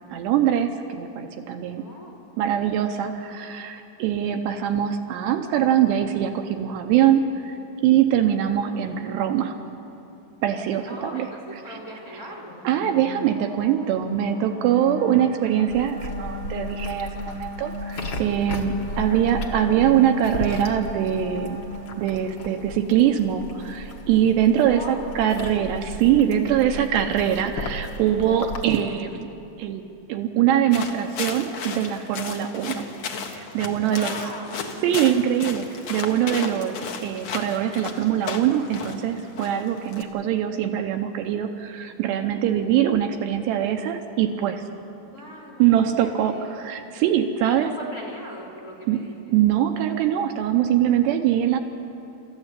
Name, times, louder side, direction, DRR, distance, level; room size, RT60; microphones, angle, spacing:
voice 1, 0.1-1.8 2.4-7.6 7.8-9.5 10.4-11.3 11.7-11.8 12.3-12.4 12.6-21.6 22.0-29.3 29.6-29.8 30.1-32.9 33.3-34.1 34.8-36.8 37.0-44.6 45.6-47.9 48.9-49.0 49.3-51.6, right 10 dB, 75° right, 6 dB, 2.9 m, -23 dB
voice 2, 1.8-2.2 8.7-9.1 10.8-12.6 18.4-19.3 24.7-25.1 33.9-34.7 45.1-46.5 47.5-49.3, left 1 dB, 20° left, -4 dB, 3.4 m, -40 dB
sound 1, 12.2-22.8, equal, 20° right, 8.0 m, -36 dB
sound 2, 15.7-28.8, left 2 dB, 85° left, 1.1 m, -35 dB
sound 3, 30.7-40.0, left 5 dB, 65° left, 1.7 m, -34 dB
28.0 x 14.0 x 8.3 m, 2.8 s
omnidirectional pair, 5.1 m